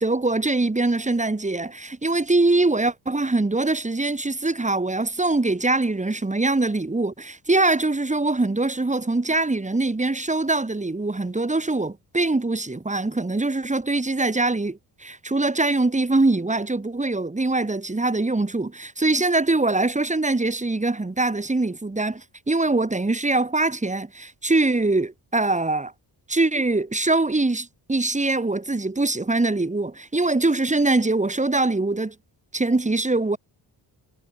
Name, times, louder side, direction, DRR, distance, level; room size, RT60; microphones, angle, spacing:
voice 1, 0.0-25.9 26.3-32.1 32.5-33.4, right 2 dB, 15° right, 2.1 m, -23 dB
cardioid pair, 80°, 44 cm